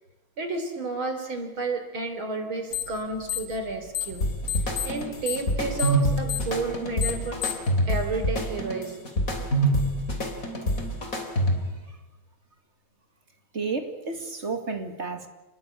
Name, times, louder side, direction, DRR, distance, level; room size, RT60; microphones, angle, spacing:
voice 1, 0.4-4.3 4.6-7.6 7.9-9.0, right 3 dB, 85° right, 6 dB, 4.4 m, -31 dB
sound 1, 2.7-3.0 3.2-4.2 4.5-7.7, left 11 dB, 70° left, 3.1 m, -30 dB
sound 2, 4.2-11.8, right 1 dB, 40° left, 3.8 m, -26 dB
voice 2, 13.5-15.3, right 4 dB, 35° right, 6 dB, 2.7 m, -31 dB
29.0 x 20.0 x 8.6 m, 1.1 s
omnidirectional pair, 2.2 m